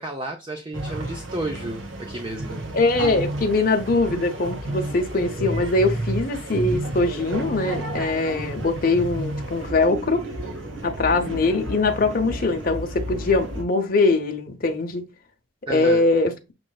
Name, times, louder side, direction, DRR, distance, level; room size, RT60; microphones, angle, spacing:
voice 1, 0.0-2.6 15.7-16.0, right 1 dB, 25° right, 0.6 m, -32 dB
sound 1, 0.7-13.6, right 1 dB, 80° right, 1.3 m, -31 dB
voice 2, 2.7-10.2 10.8-15.0 15.7-16.3, left 3 dB, 50° left, 0.8 m, -22 dB
6.1 x 3.2 x 2.3 m
head